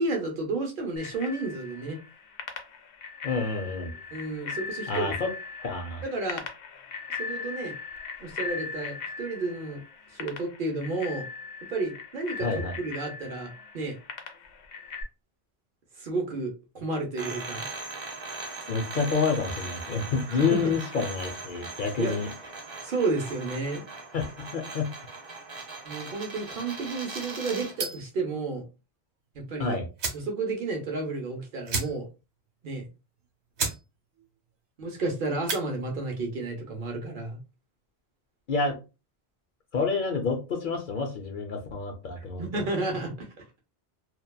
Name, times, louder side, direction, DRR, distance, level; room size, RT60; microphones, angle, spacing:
voice 1, 0.0-2.0 4.1-5.1 6.0-6.4 7.2-7.7 8.2-9.8 10.1-11.3 11.7-13.5 13.7-13.9 16.0-17.7 20.3-20.7 22.0-22.2 22.8-23.8 25.8-28.6 29.3-29.8 30.1-32.1 32.6-32.9 34.8-37.4 42.4-43.4, right 3 dB, 60° right, 2 dB, 0.8 m, -31 dB
Bicycle bell, 1.0-15.0, left 5 dB, 85° left, 0.9 m, -39 dB
voice 2, 3.2-3.9 4.9-5.3 5.6-6.0 12.4-12.8 18.7-22.3 24.1-24.9 29.6-29.9 38.5-38.8 39.7-42.5, left 4 dB, 60° left, 4 dB, 0.6 m, -28 dB
sound 1, 17.1-27.8, right 3 dB, 40° right, 0.4 m, -39 dB
sound 2, 27.7-28.1 29.5-29.6 29.9-30.3 30.7-30.8 31.0-31.2 31.6-32.2 32.6-32.7 33.2-33.3 33.5-33.8 34.2-34.5 35.3-35.6, right 4 dB, 80° right, 1.1 m, -32 dB
2.7 x 2.2 x 2.2 m, 0.29 s
omnidirectional pair, 1.1 m